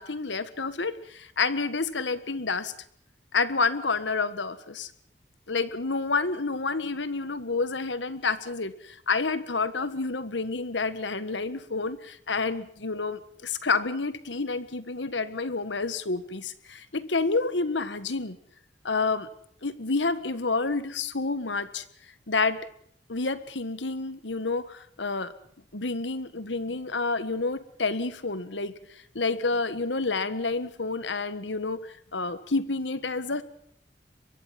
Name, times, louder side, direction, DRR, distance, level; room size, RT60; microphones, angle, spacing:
voice 1, 0.0-2.7 3.3-4.9 5.5-18.4 18.8-19.3 19.6-21.8 22.3-22.6 23.1-25.3 25.7-28.7 29.1-33.4, left 3 dB, 90° left, 13 dB, 1.6 m, -29 dB
24.0 x 22.5 x 5.9 m, 0.64 s
head